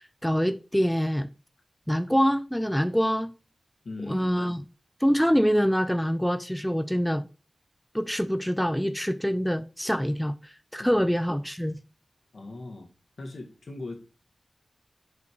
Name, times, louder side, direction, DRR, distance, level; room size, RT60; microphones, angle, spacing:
voice 1, 0.2-1.3 1.9-3.3 4.1-4.6 5.0-7.3 7.9-11.8, equal, 5° left, 0.4 m, -25 dB
voice 2, 3.8-4.4 10.8-11.1 12.3-12.9 13.2-14.0, left 2 dB, 70° left, 1.9 m, -39 dB
5.3 x 5.3 x 4.7 m
wide cardioid pair, 80°, 0 cm